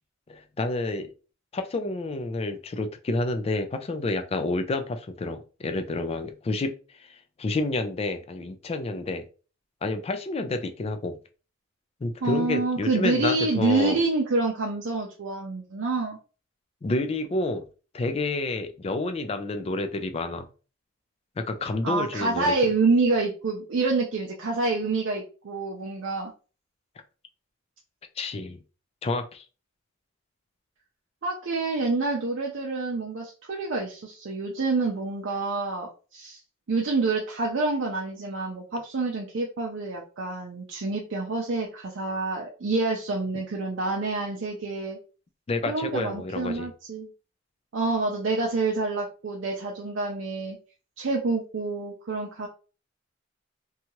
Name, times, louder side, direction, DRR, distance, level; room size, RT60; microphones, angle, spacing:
voice 1, 0.3-1.1 1.5-9.2 9.8-11.2 12.0-14.0 16.8-17.6 17.9-20.5 21.4-22.5 28.2-28.6 29.0-29.4 45.5-46.7, left 2 dB, 30° left, 7 dB, 0.3 m, -29 dB
voice 2, 12.2-16.2 21.8-26.3 31.2-36.4 36.7-45.0 45.7-47.1 47.7-50.6 51.0-52.5, right 3 dB, 65° right, -1 dB, 0.5 m, -27 dB
2.8 x 2.3 x 2.9 m, 0.35 s
head